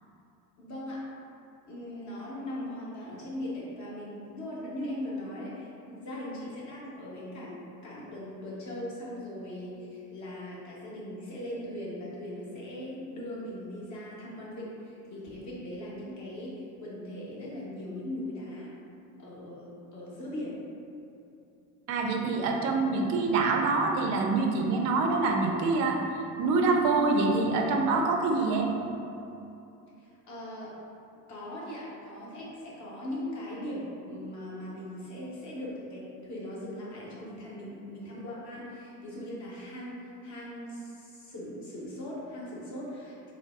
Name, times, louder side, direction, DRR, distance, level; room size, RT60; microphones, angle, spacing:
voice 1, 0.6-1.1 1.7-18.7 19.2-20.6 30.0-30.8 31.3-43.3, left 1 dB, 35° left, -6 dB, 1.2 m, -39 dB
voice 2, 21.9-26.0 26.4-28.7, right 3 dB, 40° right, 1 dB, 0.4 m, -25 dB
3.8 x 2.0 x 3.4 m, 2.8 s
hypercardioid pair, 80°, 49 cm